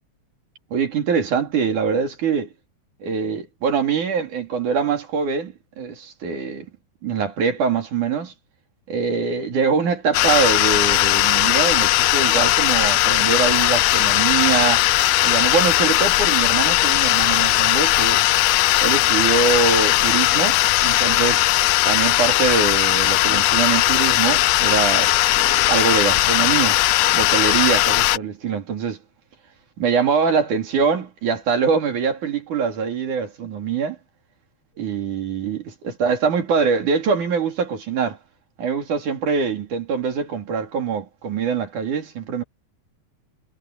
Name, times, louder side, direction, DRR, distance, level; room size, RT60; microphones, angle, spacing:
voice 1, 0.7-2.5 3.0-6.7 7.0-8.3 8.9-14.8 15.2-18.2 18.8-21.4 21.8-26.8 27.1-29.0 29.8-34.0 34.8-35.6 36.0-38.2 38.6-42.4, right 6 dB, 85° right, 4.5 m, -23 dB
sound 1, 10.1-28.2, left 17 dB, 85° left, 1.4 m, -18 dB
omnidirectional pair, 3.4 m